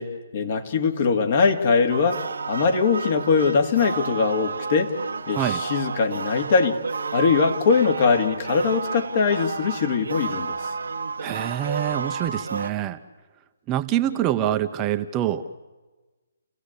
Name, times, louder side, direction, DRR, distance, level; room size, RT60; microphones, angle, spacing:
voice 1, 0.0-5.0 5.3-6.8 7.1-10.6, left 5 dB, 50° left, 5 dB, 2.5 m, -22 dB
sound 1, 1.9-12.7, right 4 dB, 75° right, 1.2 m, -31 dB
voice 2, 5.3-5.6 11.2-13.0 13.7-15.4, right 12 dB, 20° right, 7 dB, 0.8 m, -25 dB
29.5 x 16.5 x 8.4 m, 1.2 s
hypercardioid pair, 145°, 0 cm